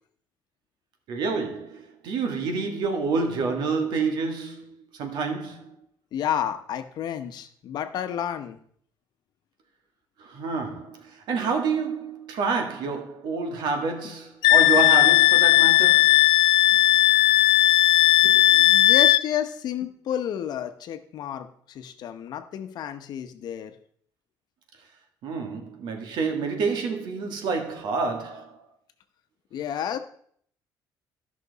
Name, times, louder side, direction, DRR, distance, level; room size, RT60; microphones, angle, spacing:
voice 1, 1.1-5.7 10.2-16.1 25.2-28.6, right 4 dB, 80° right, 1.8 m, -28 dB
voice 2, 6.1-8.6 14.0-14.1 16.7-16.9 18.2-23.7 29.5-30.0, left 10 dB, 65° left, 0.9 m, -31 dB
Wind instrument woodwind instrument, 14.4-19.2, left 15 dB, 90° left, 0.4 m, -17 dB
13.5 x 6.0 x 4.0 m
cardioid pair, 140°, 8 cm